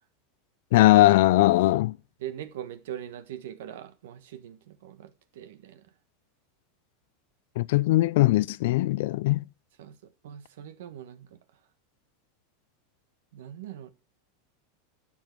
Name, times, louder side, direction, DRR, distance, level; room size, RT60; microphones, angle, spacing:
voice 1, 0.7-2.0 7.6-9.4, left 17 dB, 70° left, 0.5 m, -20 dB
voice 2, 2.2-5.9 9.8-10.0 10.2-11.4 13.3-13.9, right 10 dB, 75° right, 1.4 m, -41 dB
11.5 x 7.5 x 4.6 m
hypercardioid pair, 105°, 0 cm